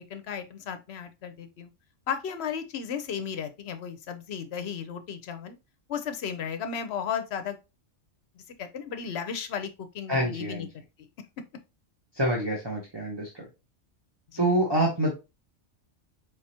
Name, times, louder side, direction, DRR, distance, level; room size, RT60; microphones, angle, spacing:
voice 1, 0.0-1.7 2.1-5.6 5.9-7.6 8.6-11.1 14.3-14.5, left 7 dB, 65° left, 0.9 m, -35 dB
voice 2, 10.1-10.7 12.2-13.4 14.4-15.1, right 1 dB, 20° right, 1.0 m, -26 dB
4.6 x 3.6 x 2.8 m
omnidirectional pair, 1.3 m